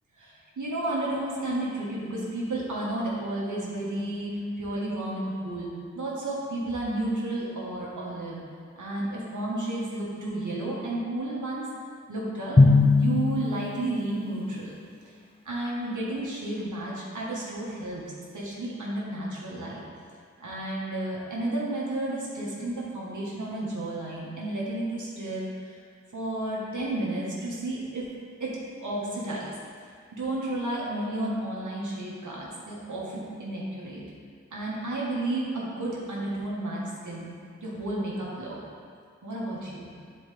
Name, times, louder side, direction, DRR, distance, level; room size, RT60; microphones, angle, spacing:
voice 1, 0.2-8.4 8.7-11.7 12.1-12.6 13.0-14.7 15.0-15.1 15.4-18.0 18.3-19.8 20.4-25.8 26.1-28.1 28.4-29.5 30.1-34.0 34.5-37.3 37.6-38.6 39.2-39.9, right 1 dB, 80° right, -5 dB, 1.5 m, -32 dB
Drum, 12.6-14.3, left 3 dB, 20° left, 0.5 m, -20 dB
9.9 x 4.4 x 3.4 m, 2.1 s
wide cardioid pair, 60°, 30 cm